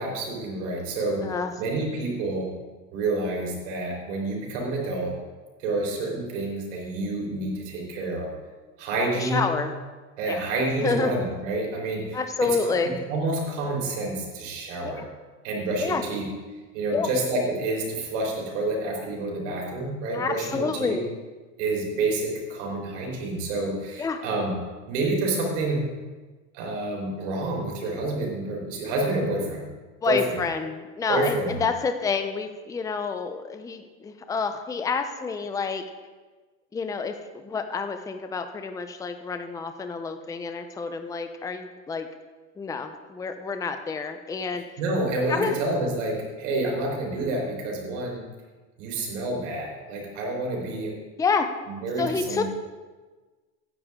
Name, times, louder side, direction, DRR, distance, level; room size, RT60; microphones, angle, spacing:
voice 1, 0.0-2.5 2.9-5.1 5.6-8.3 8.8-9.5 10.2-12.8 13.1-15.1 15.4-16.3 16.7-21.0 21.6-24.6 24.9-25.8 26.5-29.7 30.1-30.4 31.1-31.6 44.8-48.2 48.8-50.9 51.7-52.4, right 2 dB, 85° right, -1 dB, 4.3 m, -28 dB
voice 2, 9.0-9.7 10.3-10.4 10.8-11.2 12.1-13.0 14.8-15.0 15.8-16.0 16.9-17.1 20.1-21.0 24.0-24.2 30.0-35.9 36.7-42.1 42.6-44.7 45.3-45.6 51.2-51.5 52.0-52.4, left 5 dB, 10° left, 7 dB, 0.6 m, -28 dB
16.5 x 10.0 x 3.7 m, 1.3 s
supercardioid pair, 140°, 36 cm